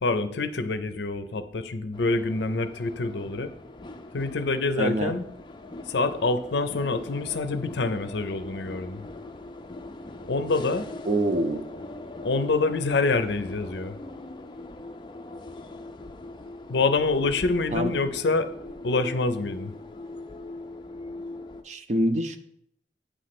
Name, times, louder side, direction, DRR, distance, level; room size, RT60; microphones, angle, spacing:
voice 1, 0.0-3.5 4.1-5.2 5.9-9.0 10.3-10.9 12.2-14.0 16.7-18.5 18.8-19.7, left 3 dB, 75° left, 11 dB, 0.6 m, -26 dB
sound 1, 1.9-21.6, left 2 dB, 25° left, 0.4 m, -41 dB
voice 2, 4.8-5.2 11.1-11.7 17.7-17.9 21.6-22.4, right 1 dB, 40° right, 9 dB, 0.5 m, -25 dB
8.3 x 3.2 x 5.9 m, 0.71 s
head